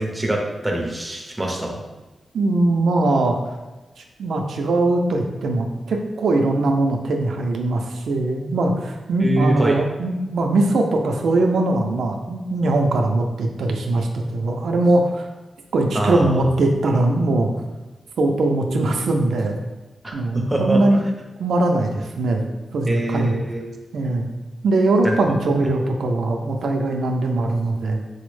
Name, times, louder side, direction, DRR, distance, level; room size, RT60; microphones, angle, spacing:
voice 1, 0.0-1.8 9.2-9.8 15.9-16.2 20.0-21.0 22.9-23.6 25.0-25.2, right 1 dB, 10° right, -1 dB, 0.5 m, -24 dB
voice 2, 2.3-3.4 4.2-15.3 15.7-17.5 18.2-19.6 20.1-21.0 21.4-22.5 22.7-23.4 23.9-24.3 24.6-28.0, right 2 dB, 80° right, 3 dB, 0.3 m, -21 dB
4.1 x 2.0 x 3.1 m, 1.1 s
wide cardioid pair, 155°, 0 cm